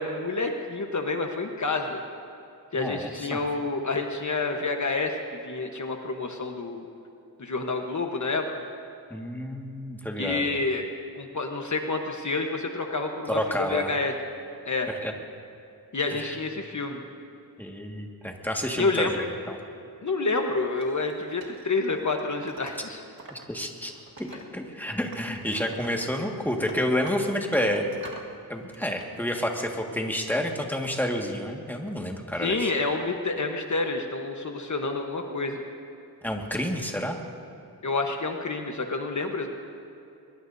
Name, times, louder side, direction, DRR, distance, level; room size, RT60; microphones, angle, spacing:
voice 1, 0.0-2.0 2.7-6.9 7.4-8.5 10.2-10.8 11.1-13.4 13.7-14.1 14.7-14.9 15.9-17.0 18.8-19.1 20.0-23.0 24.3-24.4 32.4-35.6 37.8-39.5, left 3 dB, 50° left, 3 dB, 1.2 m, -28 dB
voice 2, 2.7-3.3 9.1-10.5 13.3-14.0 15.0-15.1 16.1-16.4 17.6-19.6 23.5-23.9 24.2-27.8 28.5-32.7 36.2-37.2, equal, 5° left, 1 dB, 1.8 m, -29 dB
Wood, 20.8-23.4 23.8-24.8 25.1-28.3 28.7-29.4, right 3 dB, 65° right, 1.9 m, -46 dB
23.0 x 22.5 x 2.7 m, 2.6 s
wide cardioid pair, 90°, 38 cm